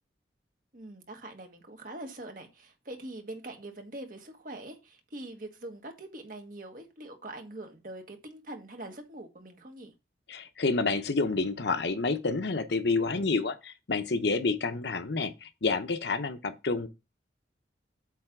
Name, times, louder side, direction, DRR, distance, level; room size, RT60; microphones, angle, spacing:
voice 1, 0.7-9.9, right 1 dB, 50° right, 1.6 m, -43 dB
voice 2, 10.3-16.9, left 3 dB, 70° left, 0.8 m, -29 dB
8.4 x 3.3 x 6.0 m
head